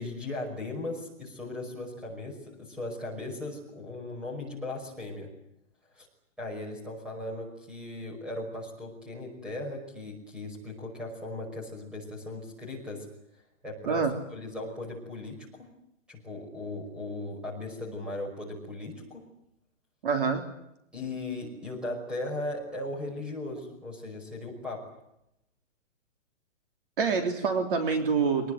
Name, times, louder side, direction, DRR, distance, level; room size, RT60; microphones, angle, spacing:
voice 1, 0.0-5.3 6.0-6.1 6.4-13.1 13.6-15.7 16.1-19.3 20.9-24.8, left 2 dB, ahead, -1 dB, 5.4 m, -37 dB
voice 2, 20.0-20.4 27.0-28.5, right 5 dB, 45° right, 5 dB, 3.4 m, -26 dB
25.5 x 20.0 x 9.3 m, 0.80 s
hypercardioid pair, 175°, 38 cm